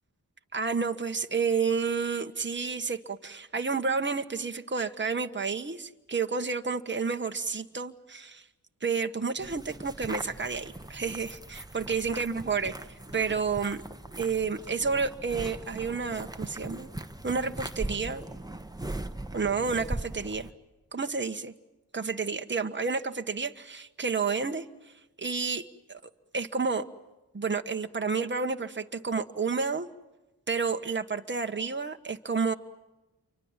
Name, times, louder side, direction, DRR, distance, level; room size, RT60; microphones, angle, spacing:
voice 1, 0.5-8.4 8.8-12.7 13.1-13.8 14.2-16.9 17.2-18.2 19.3-20.5 20.9-21.5 21.9-24.6 25.2-26.0 26.3-26.8 27.3-29.9 30.5-32.5, right 5 dB, 30° right, 6 dB, 1.4 m, -30 dB
sound 1, 9.4-20.5, right 2 dB, 10° right, 1.4 m, -40 dB
28.5 x 24.5 x 7.5 m, 1.1 s
cardioid pair, 50°, 39 cm